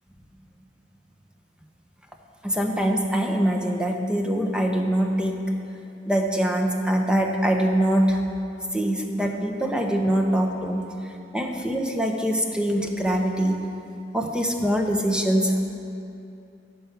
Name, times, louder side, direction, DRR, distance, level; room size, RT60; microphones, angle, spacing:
voice 1, 2.4-5.5 6.0-8.2 8.7-10.8 11.3-13.6 14.1-15.7, right 1 dB, 5° right, 2 dB, 0.6 m, -23 dB
10.5 x 4.5 x 6.9 m, 2.7 s
head